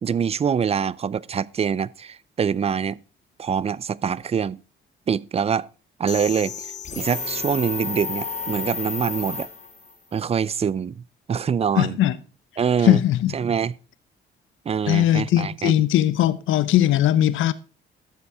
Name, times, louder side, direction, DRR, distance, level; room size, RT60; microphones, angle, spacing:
voice 1, 0.0-3.0 3.4-4.6 5.1-5.7 6.0-6.7 6.9-9.5 10.1-11.0 11.3-12.0 12.6-13.0 13.3-13.7 14.7-15.8, right 7 dB, 30° right, 0.5 m, -24 dB
sound 1, 6.1-9.9, left 4 dB, 35° left, 2.3 m, -31 dB
voice 2, 11.8-12.2 12.8-13.3 14.9-17.5, left 12 dB, 80° left, 0.8 m, -19 dB
13.0 x 7.1 x 4.8 m
cardioid pair, 90°, 20 cm